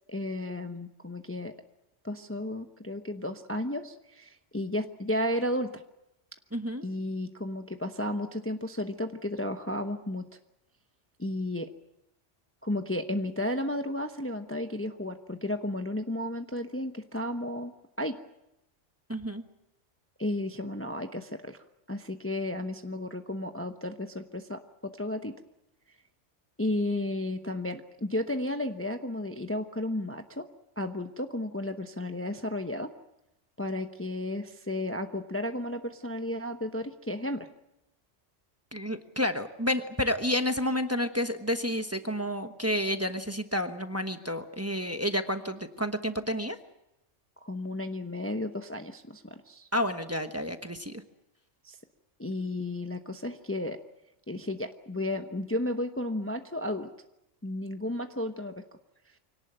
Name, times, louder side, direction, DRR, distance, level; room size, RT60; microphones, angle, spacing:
voice 1, 0.1-1.5 2.0-5.8 6.8-10.3 11.2-11.7 12.6-18.2 20.2-21.6 21.9-25.3 26.6-30.5 30.8-32.9 33.6-37.5 47.4-49.7 51.6-51.8 52.2-53.8 54.3-56.9 57.4-58.6, left 1 dB, 10° left, 6 dB, 0.9 m, -33 dB
voice 2, 6.5-6.9 19.1-19.4 38.7-46.6 49.7-51.0, left 1 dB, 15° right, 7 dB, 1.1 m, -30 dB
25.0 x 18.0 x 8.8 m, 0.88 s
omnidirectional pair, 1.2 m